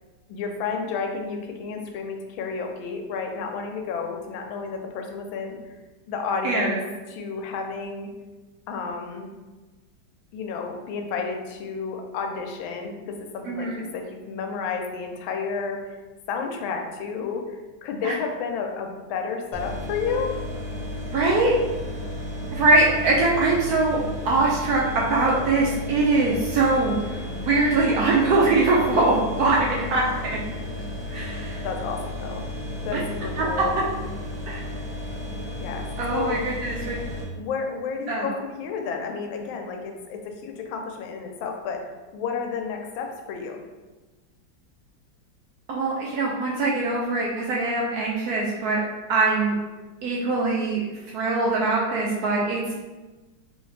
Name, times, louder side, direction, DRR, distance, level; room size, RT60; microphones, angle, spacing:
voice 1, 0.3-5.6 6.1-6.8 7.1-8.1 8.7-9.3 10.3-15.8 16.3-20.4 28.9-29.0 31.1-31.3 31.6-32.4 32.8-33.7 35.6-35.9 36.1-36.4 37.4-43.6, left 5 dB, 85° left, 3 dB, 1.4 m, -31 dB
voice 2, 6.4-6.8 13.5-13.8 18.0-18.1 21.1-21.5 22.5-24.0 24.3-24.8 25.1-29.1 29.4-29.6 29.9-30.0 31.1-31.6 32.9-33.0 33.4-33.5 34.5-34.6 36.0-37.0 38.1-38.3 45.7-48.8 49.1-49.6 50.0-50.8 51.1-52.6, right 3 dB, 80° right, -3 dB, 0.8 m, -22 dB
sound 1, 19.5-37.2, left 1 dB, 25° right, 1.1 m, -33 dB
3.1 x 3.0 x 3.2 m, 1.2 s
omnidirectional pair, 2.1 m